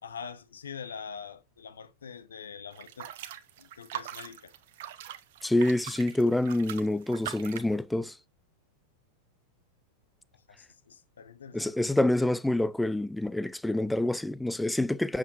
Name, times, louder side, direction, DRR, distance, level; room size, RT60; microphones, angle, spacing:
voice 1, 0.0-3.1 3.6-4.5 10.3-11.8, left 6 dB, 70° left, 1.1 m, -44 dB
sound 1, 2.7-7.7, right 11 dB, 55° right, 0.9 m, -42 dB
voice 2, 5.4-8.1 11.5-15.2, left 1 dB, 5° left, 0.4 m, -27 dB
7.7 x 7.2 x 2.6 m
figure-of-eight pair, 90°, 0 cm